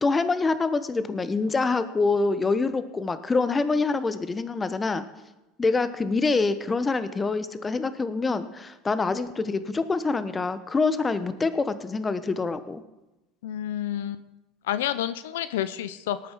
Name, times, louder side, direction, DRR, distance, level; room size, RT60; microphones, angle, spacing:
voice 1, 0.0-5.0 5.6-12.8, left 3 dB, 20° left, 12 dB, 1.1 m, -25 dB
voice 2, 13.4-14.2 14.7-16.3, left 11 dB, 75° left, 14 dB, 0.5 m, -29 dB
18.5 x 9.0 x 4.7 m, 1.0 s
hypercardioid pair, 80°, 0 cm